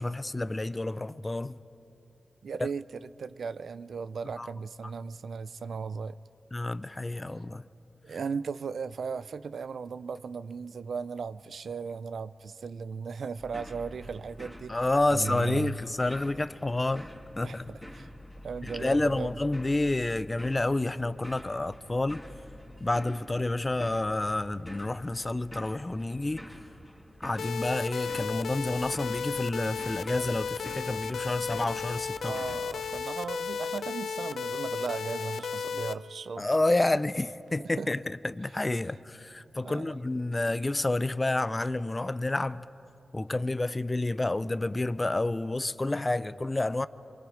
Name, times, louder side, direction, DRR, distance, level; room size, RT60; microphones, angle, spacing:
voice 1, 0.0-1.6 4.4-4.5 6.5-7.6 14.7-17.1 17.4-17.6 18.7-22.2 22.8-26.4 27.2-32.3 36.4-42.7 43.1-46.9, left 2 dB, 25° left, 0.5 m, -29 dB
voice 2, 2.4-6.2 8.0-14.8 15.1-15.8 17.4-18.1 18.4-19.3 32.2-36.4 37.6-37.9 39.6-40.0, right 5 dB, 85° right, 0.5 m, -37 dB
sound 1, 13.4-33.0, equal, ahead, 2.6 m, -47 dB
sound 2, 27.4-35.9, left 6 dB, 90° left, 0.6 m, -34 dB
28.5 x 23.5 x 5.1 m
wide cardioid pair, 80°, 0 cm